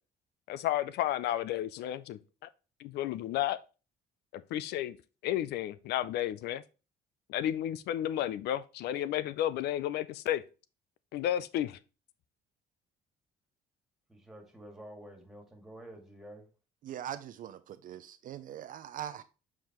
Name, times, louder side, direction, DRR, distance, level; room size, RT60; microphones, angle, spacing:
voice 1, 0.5-2.2 2.8-3.6 4.3-5.0 5.2-6.6 7.3-10.4 11.1-11.8, left 12 dB, 75° left, 0.5 m, -32 dB
voice 2, 14.1-16.5, right 1 dB, ahead, 2.2 m, -49 dB
voice 3, 16.8-19.2, right 10 dB, 55° right, 0.5 m, -41 dB
7.4 x 4.8 x 3.0 m
cardioid pair, 110°, 17 cm